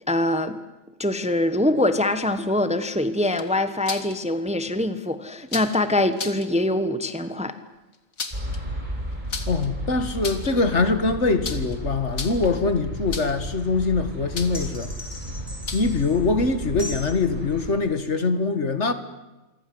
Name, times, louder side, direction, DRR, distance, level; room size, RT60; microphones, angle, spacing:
voice 1, 0.1-0.6 1.0-7.6, left 1 dB, 5° right, 1.1 m, -23 dB
sound 1, 3.2-4.1 5.5-5.8 6.1-6.5 7.9-8.6 9.3-9.7 10.1-10.6 11.4-11.8 12.1-12.5 13.1-13.5 14.3-14.7 15.7-16.0, left 4 dB, 80° left, 2.5 m, -34 dB
sound 2, 8.3-17.7, equal, 35° right, 6.3 m, -33 dB
voice 2, 9.5-14.9 15.7-18.9, left 3 dB, 60° left, 2.0 m, -23 dB
sound 3, 14.5-16.2 16.8-17.1, left 1 dB, 25° left, 7.2 m, -39 dB
27.5 x 24.0 x 7.9 m
omnidirectional pair, 1.4 m